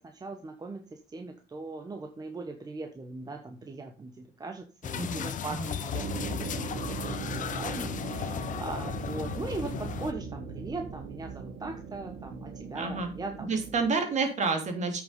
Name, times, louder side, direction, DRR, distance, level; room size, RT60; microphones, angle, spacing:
voice 1, 0.0-13.5, right 3 dB, 25° right, 5 dB, 1.3 m, -40 dB
sound 1, 4.8-10.1, left 9 dB, 50° left, 1.0 m, -35 dB
voice 2, 4.9-5.7 12.8-13.1 13.5-15.0, right 4 dB, 45° right, 5 dB, 3.1 m, -29 dB
sound 2, 5.9-13.9, right 5 dB, 75° right, 2.4 m, -39 dB
8.7 x 6.6 x 5.5 m, 0.35 s
cardioid pair, 110°, 17 cm